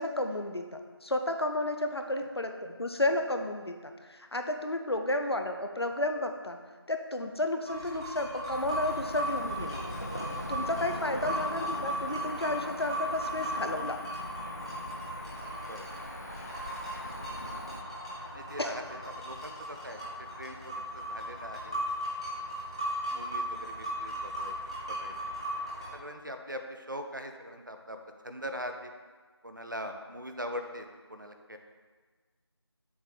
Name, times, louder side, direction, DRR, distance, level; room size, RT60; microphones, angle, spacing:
voice 1, 0.0-6.6 6.9-9.8 10.5-14.0 18.6-18.8, left 1 dB, 65° left, 5 dB, 0.8 m, -32 dB
sound 1, 7.6-25.9, equal, 10° right, 0.9 m, -37 dB
Cricket / Motor vehicle (road), 8.5-17.8, equal, 35° left, 0.5 m, -41 dB
voice 2, 18.3-21.8 23.1-24.5 24.9-25.1 25.8-28.0 28.2-28.9 29.4-31.6, equal, 45° right, 6 dB, 0.7 m, -42 dB
7.1 x 3.8 x 6.5 m, 1.4 s
figure-of-eight pair, 170°, 14 cm